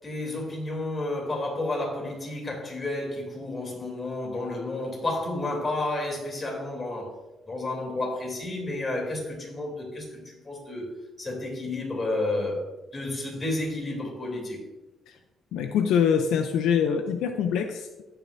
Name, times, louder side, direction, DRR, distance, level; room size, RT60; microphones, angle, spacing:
voice 1, 0.0-7.1 7.5-12.6 12.9-14.6, left 2 dB, 30° left, 3.2 m, -31 dB
voice 2, 15.5-18.0, left 7 dB, 85° left, 0.6 m, -24 dB
16.5 x 5.8 x 2.7 m
cardioid pair, 90°, 0 cm